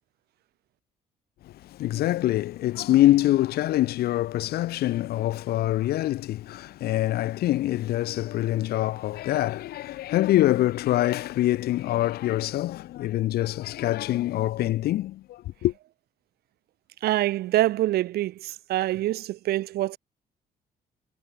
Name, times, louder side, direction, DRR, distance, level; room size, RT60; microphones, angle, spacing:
voice 1, 1.4-15.7, left 15 dB, 75° left, 1.5 m, -25 dB
voice 2, 17.0-20.0, right 15 dB, 85° right, 1.9 m, -25 dB
cardioid pair, 155°, 16 cm